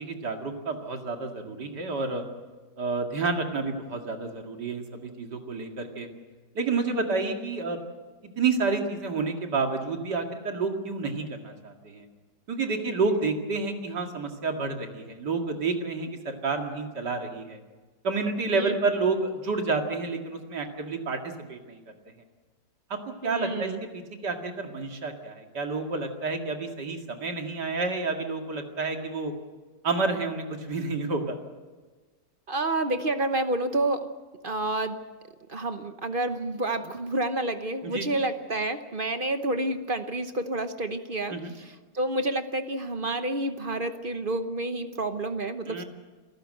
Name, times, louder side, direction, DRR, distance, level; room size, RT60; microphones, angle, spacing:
voice 1, 0.0-2.2 2.8-6.1 6.5-7.8 8.4-12.1 12.5-17.6 18.0-21.8 22.9-23.0 23.2-29.3 29.8-31.4 37.8-38.1 41.3-41.5 45.7-45.8, right 3 dB, 75° right, 3 dB, 2.8 m, -29 dB
voice 2, 23.2-23.8 32.5-34.1 34.4-35.0 35.5-45.8, right 2 dB, 40° right, 9 dB, 0.9 m, -29 dB
28.0 x 14.0 x 7.8 m, 1.3 s
omnidirectional pair, 1.8 m